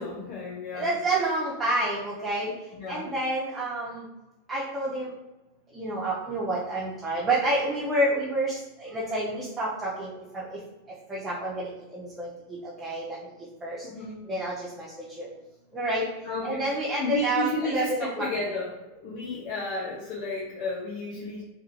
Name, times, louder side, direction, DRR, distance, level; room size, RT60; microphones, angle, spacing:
voice 1, 0.0-1.0 2.7-3.1 13.8-14.2 16.2-21.4, left 2 dB, 45° left, -4 dB, 0.8 m, -33 dB
voice 2, 0.7-2.5 2.9-4.0 4.5-5.1 5.7-10.4 11.1-12.3 12.6-13.2 13.6-13.8 14.3-14.9 15.2-15.3 15.7-16.0 16.4-18.3, right 1 dB, 15° right, -7 dB, 0.9 m, -28 dB
3.6 x 3.2 x 3.2 m, 1.0 s
figure-of-eight pair, 90°, 0 cm